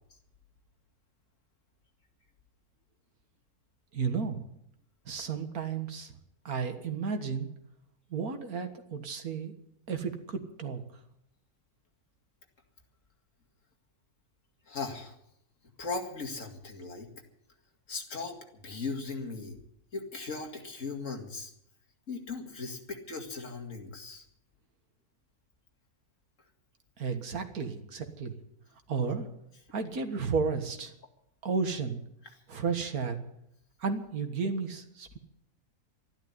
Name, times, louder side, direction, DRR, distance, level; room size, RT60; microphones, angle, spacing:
voice 1, 3.9-4.4 5.1-6.1 6.5-7.5 8.1-9.5 9.9-10.8 27.0-28.4 28.9-29.3 29.7-30.9 31.4-32.0 32.5-33.2 33.8-35.2, right 5 dB, 80° right, 7 dB, 2.1 m, -33 dB
voice 2, 14.7-15.2 15.8-17.1 17.9-18.4 18.6-19.6 19.9-21.5 22.1-24.3, left 4 dB, 60° left, 3 dB, 2.6 m, -38 dB
13.0 x 11.5 x 9.6 m, 0.77 s
omnidirectional pair, 1.5 m